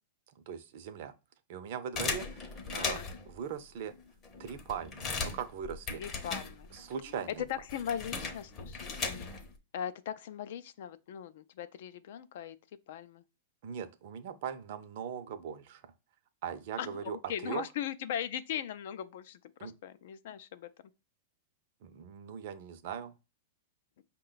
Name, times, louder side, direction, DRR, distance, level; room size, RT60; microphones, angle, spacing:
voice 1, 0.5-1.1 1.5-3.0 3.3-3.9 4.4-6.0 6.7-7.5 13.6-15.9 16.4-17.6 19.6-19.7 21.8-23.1, right 8 dB, 55° right, 0.5 m, -40 dB
sound 1, 2.0-3.3 3.9-4.0 4.2-6.9 7.2-9.6, left 4 dB, 25° left, 0.7 m, -37 dB
voice 2, 2.7-3.1 6.0-6.7 7.5-9.3 9.7-12.6 12.9-13.2 16.8-20.7, left 9 dB, 60° left, 0.4 m, -39 dB
5.4 x 2.2 x 3.8 m
supercardioid pair, 150°, 0 cm